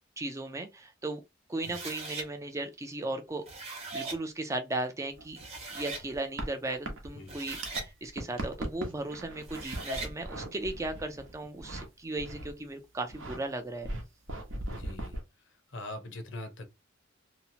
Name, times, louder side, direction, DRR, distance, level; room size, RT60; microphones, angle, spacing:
voice 1, 0.2-1.2 1.5-3.5 3.9-5.4 5.7-13.9, right 2 dB, 15° right, 0.3 m, -36 dB
sound 1, 1.6-2.3 3.3-4.2 5.0-5.1 5.4-6.1 7.1-7.9 9.4-10.1, right 3 dB, 30° right, 0.8 m, -39 dB
sound 2, 5.1-7.8 8.1-11.9 12.2-12.6 13.0-13.4 13.8-15.2, right 1 dB, 80° right, 0.8 m, -39 dB
voice 2, 14.7-15.2 15.4-16.7, left 2 dB, 65° left, 0.6 m, -42 dB
2.8 x 2.0 x 2.7 m
head